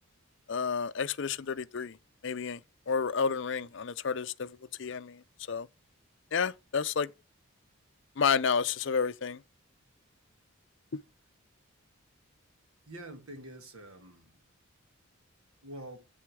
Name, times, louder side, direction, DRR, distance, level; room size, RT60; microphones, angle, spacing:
voice 1, 0.5-2.0 2.2-2.6 2.9-5.2 5.5-5.7 6.3-7.1 8.2-9.4, left 6 dB, 55° left, 0.5 m, -30 dB
voice 2, 12.9-14.4 15.6-16.1, right 1 dB, 85° right, 2.3 m, -46 dB
7.7 x 6.7 x 4.7 m
head